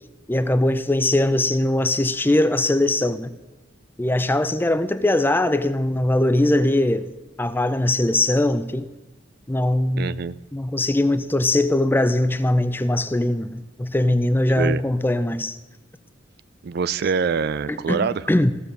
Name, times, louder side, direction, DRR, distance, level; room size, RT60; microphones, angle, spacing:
voice 1, 0.3-3.3 4.0-7.1 7.4-8.9 9.5-10.2 10.5-15.6 17.7-18.5, left 1 dB, 10° left, 0.5 m, -21 dB
voice 2, 10.0-10.3 14.6-14.8 16.6-18.2, right 5 dB, 55° right, 0.4 m, -24 dB
16.0 x 6.9 x 6.3 m
head